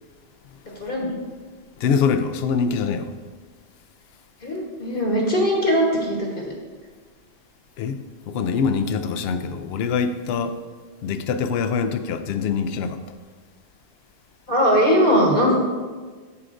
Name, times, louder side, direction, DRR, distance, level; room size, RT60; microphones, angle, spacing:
voice 1, 0.8-1.1 4.4-6.5 14.5-15.5, equal, 55° left, -2 dB, 1.4 m, -20 dB
voice 2, 1.8-3.1 7.8-10.6 11.0-13.0, left 6 dB, 70° left, 9 dB, 0.8 m, -24 dB
14.0 x 4.8 x 2.5 m, 1.4 s
omnidirectional pair, 1.1 m